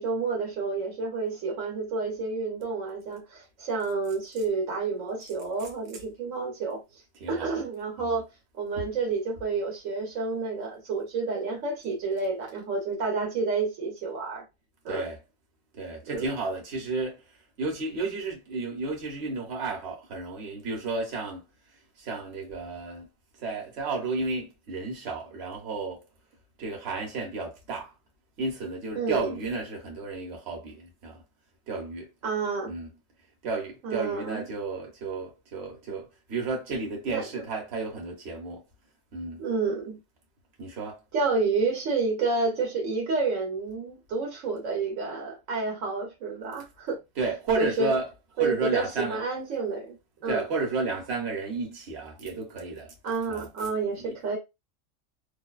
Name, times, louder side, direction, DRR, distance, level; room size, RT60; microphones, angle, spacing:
voice 1, 0.0-6.8 7.3-8.3 8.5-14.4 14.8-15.0 16.1-16.3 29.0-29.4 32.2-32.8 33.8-34.4 37.1-37.3 39.4-40.0 41.1-47.0 47.6-47.9 48.4-50.0 50.2-50.5 53.0-54.4, right 4 dB, 80° right, 1.1 m, -29 dB
voice 2, 7.2-7.6 8.0-8.2 14.9-15.2 15.7-17.2 17.6-21.4 22.0-23.1 23.4-26.0 26.6-27.9 28.4-31.2 31.7-32.1 32.7-32.9 33.4-38.6 39.1-39.4 40.6-41.0 47.2-48.1 48.4-49.2 50.3-52.9 53.3-53.5 54.0-54.1, right 3 dB, 55° right, 1.1 m, -32 dB
2.6 x 2.3 x 2.3 m
omnidirectional pair, 1.4 m